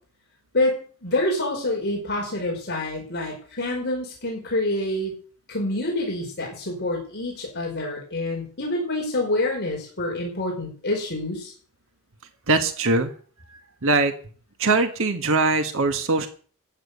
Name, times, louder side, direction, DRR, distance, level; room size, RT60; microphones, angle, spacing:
voice 1, 1.0-5.1 5.5-11.5, left 1 dB, 50° left, -1 dB, 5.3 m, -27 dB
voice 2, 12.5-13.1 13.5-14.1 14.6-16.3, right 3 dB, 65° right, 7 dB, 1.6 m, -22 dB
15.0 x 9.4 x 6.9 m, 0.43 s
head